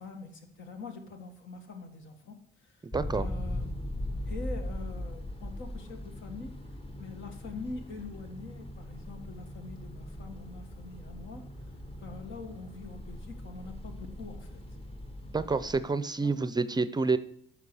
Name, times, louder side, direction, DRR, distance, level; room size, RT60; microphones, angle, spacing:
voice 1, 0.0-2.8 3.1-3.7 4.2-6.6 7.0-14.6 16.0-16.3, left 3 dB, 75° left, 5 dB, 1.7 m, -44 dB
sound 1, 2.9-15.8, left 1 dB, 30° left, 1.4 m, -40 dB
voice 2, 2.9-3.2 15.3-17.2, right 4 dB, 20° right, 13 dB, 0.5 m, -28 dB
9.4 x 6.0 x 4.7 m, 0.66 s
cardioid pair, 90°, 20 cm